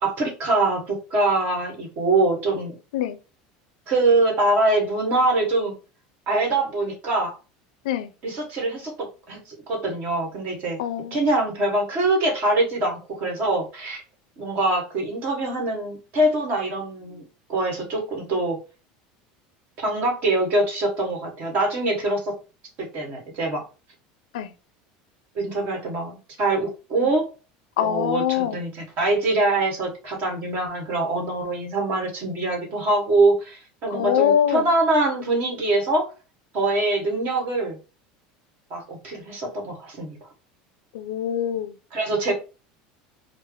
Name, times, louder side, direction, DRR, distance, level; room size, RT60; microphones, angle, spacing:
voice 1, 0.0-2.7 3.9-5.7 6.3-7.3 8.2-9.4 9.7-10.8 11.1-14.0 14.4-18.6 19.8-22.3 22.8-23.6 25.3-27.3 27.8-36.1 36.5-37.8 38.7-40.2 41.9-42.3, right 2 dB, 50° right, 1.5 m, -24 dB
voice 2, 10.8-11.2 24.3-24.5 27.0-27.1 27.8-28.6 33.9-34.7 40.9-41.7, left 10 dB, 90° left, 0.4 m, -24 dB
4.5 x 2.0 x 3.2 m
supercardioid pair, 120°, 4 cm